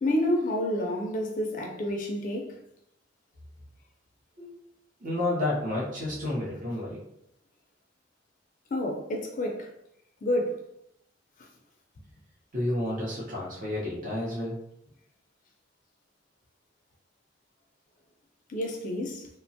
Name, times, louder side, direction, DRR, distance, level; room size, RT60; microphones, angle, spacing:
voice 1, 0.0-2.6 8.7-9.7 10.2-10.6 18.5-19.3, left 1 dB, 40° left, 0.3 m, -29 dB
voice 2, 5.0-7.0 12.5-14.6, left 1 dB, 40° right, 0.7 m, -30 dB
2.8 x 2.1 x 2.7 m
head